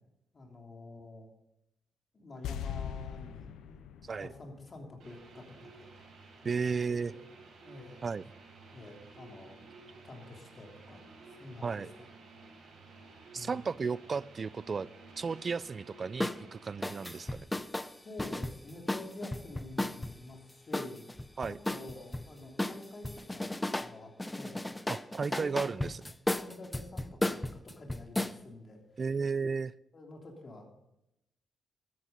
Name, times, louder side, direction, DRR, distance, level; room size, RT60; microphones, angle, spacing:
voice 1, 0.3-1.3 2.1-5.9 6.4-7.0 7.6-8.0 8.7-9.6 10.0-11.9 13.3-13.6 18.0-21.0 21.6-23.5 23.8-24.7 25.2-25.8 26.3-29.0 29.9-30.7, left 2 dB, 45° left, 2 dB, 3.0 m, -48 dB
sound 1, 2.4-5.6 5.9-6.0, left 9 dB, 85° left, 0.6 m, -42 dB
sound 2, 5.0-17.3, right 3 dB, 75° right, 6.0 m, -54 dB
voice 2, 6.4-7.1 8.0-8.2 11.6-11.9 13.3-14.9 15.2-17.4 21.4-21.6 24.9-26.0 29.0-29.7, right 5 dB, 45° right, 21 dB, 0.3 m, -34 dB
sound 3, 16.2-16.4 16.8-20.2 20.7-22.3 22.6-23.9 24.2-28.4, left 1 dB, 10° left, 0.6 m, -34 dB
13.0 x 9.6 x 5.3 m, 0.88 s
cardioid pair, 70°, 0 cm